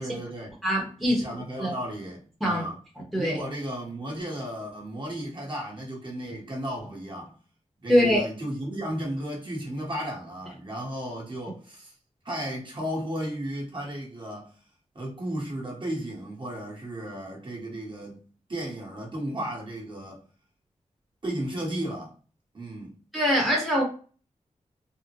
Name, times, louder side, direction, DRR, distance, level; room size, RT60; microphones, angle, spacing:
voice 1, 0.0-0.5 1.0-2.8 3.2-7.3 7.8-11.9 12.2-14.5 14.9-18.1 18.5-20.2 21.2-22.1 22.5-22.9, right 1 dB, 40° right, 1.2 m, -34 dB
voice 2, 0.6-1.2 1.6-1.7 2.4-2.6 3.1-3.4 7.9-8.2 23.1-23.8, equal, ahead, 0.9 m, -22 dB
3.6 x 2.0 x 2.9 m
wide cardioid pair, 105°, 13 cm